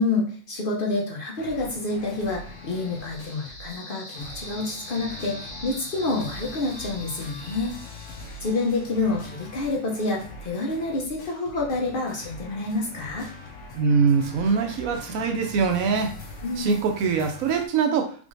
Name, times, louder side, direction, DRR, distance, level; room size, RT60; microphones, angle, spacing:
voice 1, 0.0-7.7 8.4-13.3 16.4-16.7, left 3 dB, 50° left, -2 dB, 0.8 m, -28 dB
sound 1, 1.4-3.8 4.1-17.7, left 2 dB, 70° left, 1.1 m, -42 dB
sound 2, 2.0-8.9, left 1 dB, 10° left, 1.5 m, -43 dB
voice 2, 13.7-16.1 16.6-18.3, right 5 dB, 85° right, 4 dB, 1.1 m, -23 dB
3.6 x 3.3 x 2.6 m, 0.43 s
omnidirectional pair, 1.4 m